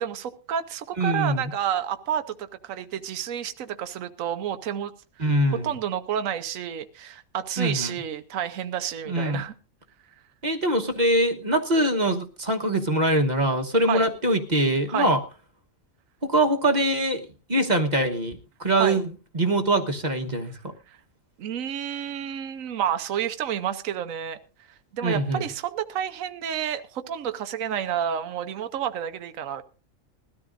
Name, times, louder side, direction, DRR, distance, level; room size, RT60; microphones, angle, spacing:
voice 1, 0.0-4.9 5.5-9.5 13.9-14.0 14.9-15.1 18.8-19.0 20.9-21.0 21.4-24.4 24.9-29.6, right 9 dB, 75° right, 10 dB, 1.2 m, -30 dB
voice 2, 1.0-1.5 5.2-5.7 7.6-7.9 9.1-9.4 10.4-15.2 16.2-20.7 25.0-25.4, right 1 dB, 35° right, 4 dB, 1.3 m, -23 dB
20.5 x 13.5 x 2.5 m, 0.33 s
omnidirectional pair, 1.4 m